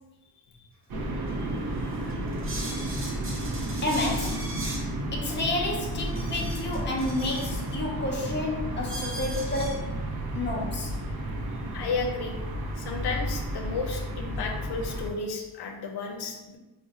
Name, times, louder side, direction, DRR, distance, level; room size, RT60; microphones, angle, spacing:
sound 1, 0.9-15.1, right 1 dB, 65° right, 0.6 m, -32 dB
sound 2, 1.3-1.4 1.9-4.9 5.6-7.7 8.3-8.4 8.9-9.7, right 1 dB, 35° right, 0.7 m, -40 dB
voice 1, 3.8-4.5 5.1-10.0 10.3-10.9, left 2 dB, 30° left, -1 dB, 0.6 m, -30 dB
voice 2, 11.7-12.3 12.8-16.6, left 4 dB, 85° left, 2 dB, 0.6 m, -33 dB
2.6 x 2.1 x 4.0 m, 1.1 s
wide cardioid pair, 125°, 39 cm